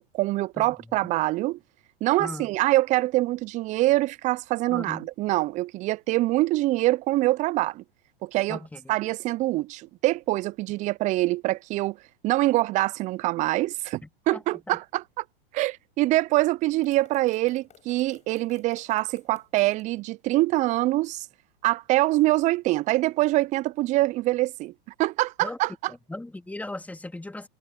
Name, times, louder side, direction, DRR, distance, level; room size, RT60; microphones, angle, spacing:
voice 1, 0.0-1.6 2.0-7.8 8.2-8.6 8.9-12.0 12.2-14.0 14.3-15.2 15.5-21.3 21.6-24.7 25.0-25.9, right 18 dB, 25° right, 0.4 m, -24 dB
voice 2, 0.6-1.1 2.2-2.5 4.7-5.1 8.5-8.9 14.0-14.4 14.7-14.8 25.4-25.6 26.1-27.5, left 2 dB, 5° left, 3.5 m, -38 dB
sound 1, 16.8-19.9, left 8 dB, 25° left, 5.2 m, -56 dB
hypercardioid pair, 105°, 30 cm